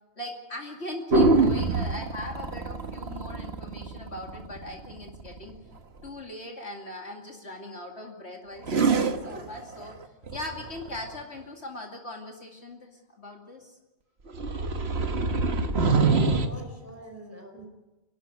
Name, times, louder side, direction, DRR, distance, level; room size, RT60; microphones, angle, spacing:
voice 1, 0.2-5.6 6.0-9.9 10.3-13.8 14.3-14.4, left 1 dB, 55° left, 1 dB, 2.8 m, -40 dB
sound 1, 1.1-5.4 8.6-11.0 14.3-16.5, right 3 dB, 50° right, 1.6 m, -25 dB
voice 2, 16.0-17.7, equal, 10° right, 3 dB, 4.8 m, -45 dB
27.5 x 12.0 x 9.7 m, 1.1 s
omnidirectional pair, 1.4 m